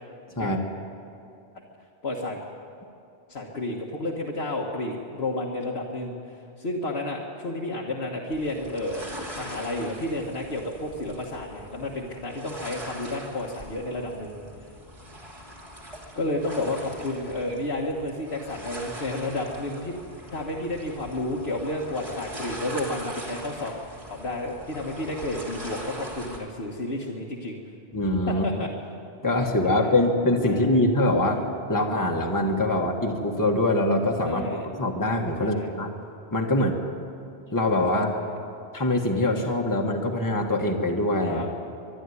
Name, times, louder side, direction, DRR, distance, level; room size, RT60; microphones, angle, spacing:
voice 1, 2.0-2.4 3.3-9.0 9.4-14.4 16.2-20.0 20.3-23.8 24.1-27.6 28.3-28.7 29.6-29.9 30.5-30.8 34.2-34.7 35.4-35.7 37.9-38.4 41.3-41.5, left 1 dB, 75° left, -2 dB, 1.8 m, -31 dB
sound 1, 8.3-26.4, equal, 30° right, 2.8 m, -42 dB
voice 2, 27.9-28.4 29.2-35.9 36.3-36.8 37.5-38.1 38.7-41.4, left 1 dB, 20° left, 1 dB, 1.5 m, -24 dB
24.0 x 11.5 x 9.8 m, 2.6 s
omnidirectional pair, 1.1 m